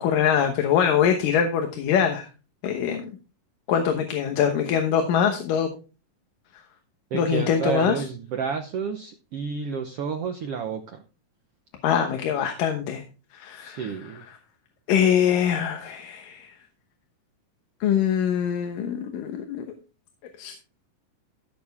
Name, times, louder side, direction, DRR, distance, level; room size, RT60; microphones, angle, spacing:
voice 1, 0.0-2.3 2.6-3.1 3.7-5.7 7.1-8.0 11.8-13.0 13.3-13.9 14.9-16.5 17.8-19.7 20.4-20.5, left 8 dB, 80° left, 5 dB, 2.8 m, -23 dB
voice 2, 7.1-11.0 13.6-14.2, right 6 dB, 75° right, 6 dB, 1.3 m, -30 dB
15.0 x 6.7 x 3.5 m, 0.33 s
omnidirectional pair, 3.9 m